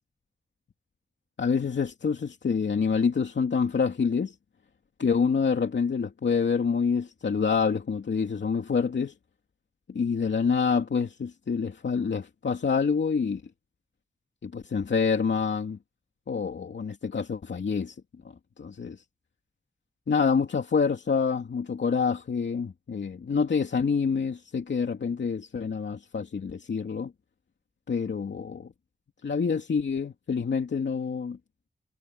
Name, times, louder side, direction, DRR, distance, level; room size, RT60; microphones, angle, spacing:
voice 1, 1.4-4.3 5.0-9.1 9.9-13.4 14.4-15.8 16.3-18.0 18.6-19.0 20.1-27.1 27.9-28.7 29.2-31.4, left 5 dB, 70° left, 2.7 m, -27 dB
wide cardioid pair, 105°, 19 cm